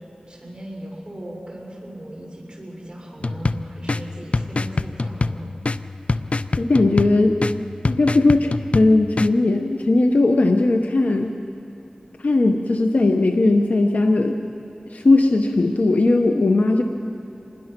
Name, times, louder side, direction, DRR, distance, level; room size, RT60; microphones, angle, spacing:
voice 1, 0.3-5.5, right 1 dB, 35° right, -2 dB, 5.8 m, -37 dB
sound 1, 3.2-9.3, left 3 dB, 55° left, 0.5 m, -26 dB
voice 2, 6.6-7.4 7.8-11.3 12.2-14.4 14.9-16.8, left 2 dB, 80° left, 4 dB, 0.9 m, -18 dB
26.5 x 20.0 x 6.0 m, 2.8 s
wide cardioid pair, 60°, 3 cm